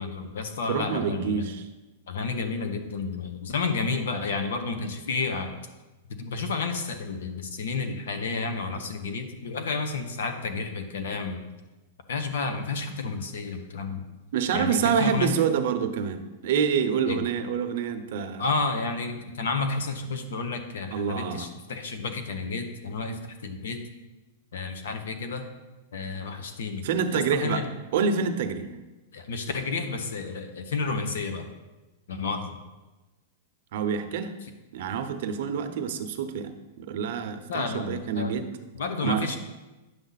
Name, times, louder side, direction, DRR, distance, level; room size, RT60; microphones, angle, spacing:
voice 1, 0.0-1.5 2.1-5.5 6.1-11.4 12.1-14.0 14.5-15.4 17.1-17.2 18.4-23.8 24.5-25.5 25.9-27.7 29.1-31.5 32.1-32.6 37.5-38.3 38.7-39.4, left 4 dB, 85° left, 7 dB, 1.2 m, -31 dB
voice 2, 0.7-1.7 14.3-18.5 20.9-21.5 26.8-27.6 27.9-28.7 33.7-34.4 34.7-38.5 39.0-39.3, right 6 dB, 55° right, 7 dB, 0.8 m, -27 dB
9.8 x 7.1 x 4.1 m, 1.1 s
supercardioid pair, 170°, 0 cm